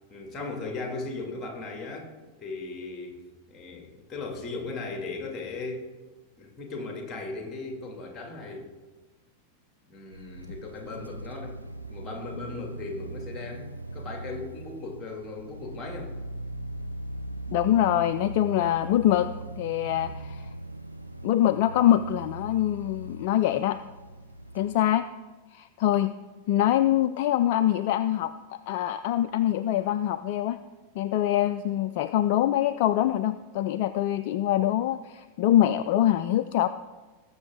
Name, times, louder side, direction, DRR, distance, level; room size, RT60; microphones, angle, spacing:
voice 1, 0.1-2.1 2.4-3.2 3.5-5.9 6.4-8.7 9.9-11.6 11.9-16.1 19.9-20.1, left 3 dB, 20° left, 2 dB, 2.4 m, -37 dB
sound 1, 10.1-24.8, right 2 dB, 85° right, 0.5 m, -40 dB
voice 2, 17.5-19.3 19.6-20.5 21.2-23.8 24.5-25.0 25.5-26.1 26.5-30.6 31.0-36.7, left 12 dB, 50° left, 12 dB, 0.4 m, -24 dB
19.0 x 6.8 x 3.7 m, 1.2 s
figure-of-eight pair, 90°, 0 cm